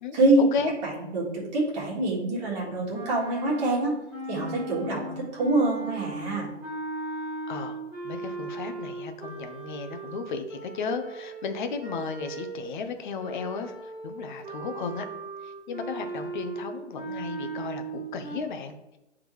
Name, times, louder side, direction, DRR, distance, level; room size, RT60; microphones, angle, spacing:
voice 1, 0.1-0.5 0.8-3.9 4.3-6.5, right 2 dB, 35° right, -5 dB, 1.8 m, -25 dB
sound 1, 2.9-12.7 13.2-18.4, right 2 dB, 5° right, 1.7 m, -38 dB
voice 2, 7.5-15.1 15.4-19.0, left 5 dB, 40° left, 7 dB, 0.8 m, -34 dB
8.5 x 3.7 x 3.1 m, 0.95 s
hypercardioid pair, 145°, 36 cm